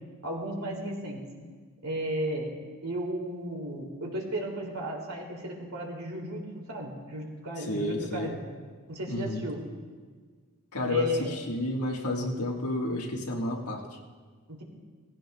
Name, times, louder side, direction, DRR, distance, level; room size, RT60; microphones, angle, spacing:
voice 1, 0.2-1.2 1.8-2.5 2.8-8.4 8.9-9.6 10.9-11.4 14.5-14.6, equal, 75° right, -1 dB, 2.7 m, -34 dB
voice 2, 7.7-8.3 9.1-9.5 10.7-13.9, left 1 dB, 85° left, 0 dB, 1.6 m, -31 dB
18.5 x 15.5 x 2.3 m, 1.5 s
head